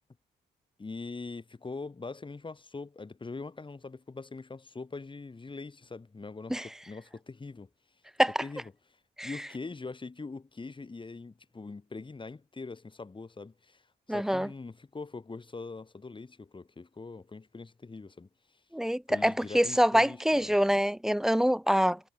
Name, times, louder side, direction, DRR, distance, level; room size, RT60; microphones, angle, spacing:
voice 1, 0.8-7.7 8.4-8.7 9.2-13.8 14.1-18.3 19.1-20.5, left 3 dB, 25° left, 4.4 m, -42 dB
voice 2, 14.1-14.5 18.7-22.0, equal, ahead, 0.4 m, -25 dB
cardioid pair, 90°, 20 cm